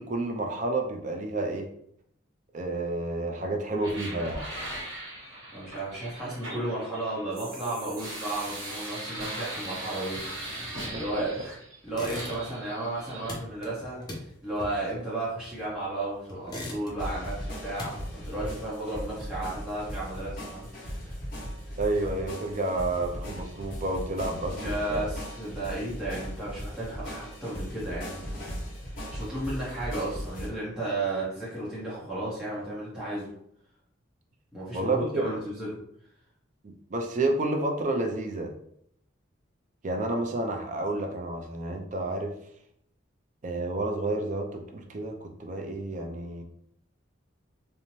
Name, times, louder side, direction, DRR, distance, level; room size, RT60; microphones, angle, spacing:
voice 1, 0.0-1.7 2.5-4.4 10.9-11.2 21.8-25.1 34.7-35.3 36.6-38.5 39.8-42.3 43.4-46.4, right 2 dB, 40° right, 3 dB, 0.4 m, -30 dB
sound 1, 3.8-11.8 12.1-13.3, right 1 dB, 75° right, 1.1 m, -39 dB
voice 2, 5.5-11.5 11.8-21.2 21.7-21.8 24.6-28.6 29.1-33.3 34.5-35.7, right 2 dB, 5° right, -10 dB, 0.8 m, -34 dB
sound 2, 11.9-12.7 12.9-15.9 16.3-17.2 17.5-18.9, left 1 dB, 20° left, 0.5 m, -40 dB
sound 3, 17.0-30.5, equal, 45° left, 0.9 m, -38 dB
2.6 x 2.1 x 3.0 m, 0.71 s
head